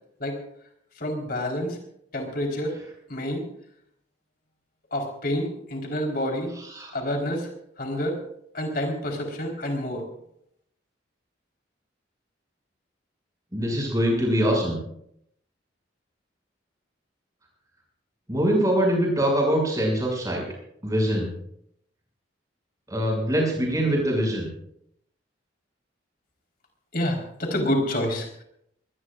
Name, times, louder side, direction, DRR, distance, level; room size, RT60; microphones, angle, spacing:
voice 1, 1.0-1.8 2.1-2.7 3.1-3.4 4.9-6.5 6.9-7.5 7.8-8.2 8.5-10.0 26.9-28.4, left 1 dB, 50° left, 1 dB, 4.2 m, -28 dB
voice 2, 13.5-14.8 18.3-20.5 20.8-21.3 22.9-24.5, equal, 20° right, -1 dB, 6.7 m, -23 dB
23.5 x 19.5 x 2.5 m, 0.74 s
head